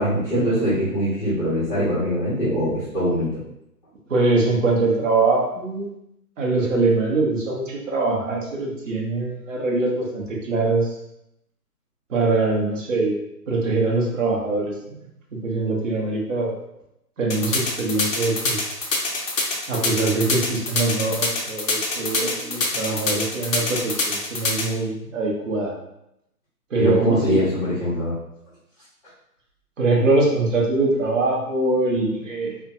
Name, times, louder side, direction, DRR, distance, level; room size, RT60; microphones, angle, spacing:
voice 1, 0.0-3.3 26.8-28.2, equal, 30° left, -16 dB, 1.0 m, -22 dB
voice 2, 4.1-5.9 6.4-10.9 12.1-13.1 13.5-15.0 15.3-16.5 17.2-18.6 19.7-25.7 26.7-27.4 29.8-32.6, right 3 dB, 50° right, -2 dB, 0.7 m, -23 dB
sound 1, 17.3-24.6, left 3 dB, 55° left, 0.7 m, -24 dB
2.6 x 2.2 x 2.5 m, 0.82 s
hypercardioid pair, 170°, 48 cm